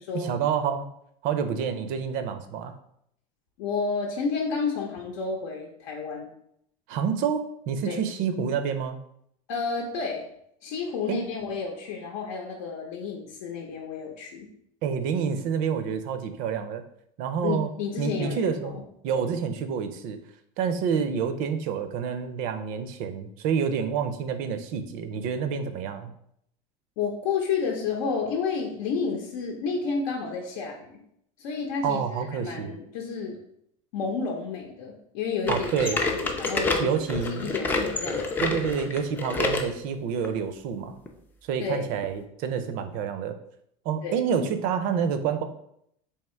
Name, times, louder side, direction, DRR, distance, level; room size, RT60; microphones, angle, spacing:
voice 1, 0.1-0.9 1.2-2.7 6.9-9.0 11.1-11.2 14.8-16.8 17.2-17.7 18.0-18.8 19.0-20.2 20.6-26.1 31.8-32.7 35.5-36.0 36.8-37.5 38.4-41.0 41.4-43.4 43.8-45.4, right 7 dB, 50° right, 9 dB, 0.5 m, -28 dB
voice 2, 3.6-6.3 7.9-8.0 9.5-10.2 10.6-14.5 17.4-18.8 27.0-31.0 31.4-33.4 33.9-36.9 37.3-38.5 41.6-41.9 44.0-44.2, left 5 dB, 75° left, 0 dB, 0.7 m, -31 dB
sound 1, 35.5-39.7 40.2-40.4 41.1-41.2 42.0-42.1, left 3 dB, 10° left, 0.3 m, -28 dB
3.5 x 2.8 x 4.3 m, 0.73 s
cardioid pair, 155°, 18 cm